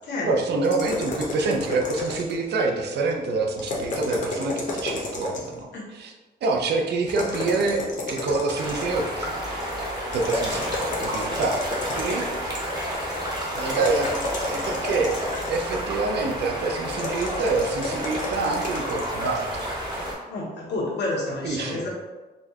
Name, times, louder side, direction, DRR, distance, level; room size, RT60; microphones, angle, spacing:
voice 1, 0.2-6.1 6.4-9.3 10.1-10.7 11.0-12.3 13.5-14.1 14.5-15.2 15.5-19.7 21.4-21.9, right 3 dB, 75° right, 2 dB, 0.5 m, -26 dB
sound 1, 0.6-2.5 3.6-5.6 7.1-9.1 10.1-12.5 13.7-15.9 16.9-19.1, left 2 dB, 45° left, 0.7 m, -31 dB
sound 2, 8.5-20.1, equal, 25° right, 0.8 m, -30 dB
voice 2, 20.3-21.9, left 2 dB, 85° left, -3 dB, 1.0 m, -29 dB
4.2 x 2.3 x 2.8 m, 1.2 s
wide cardioid pair, 160°, 17 cm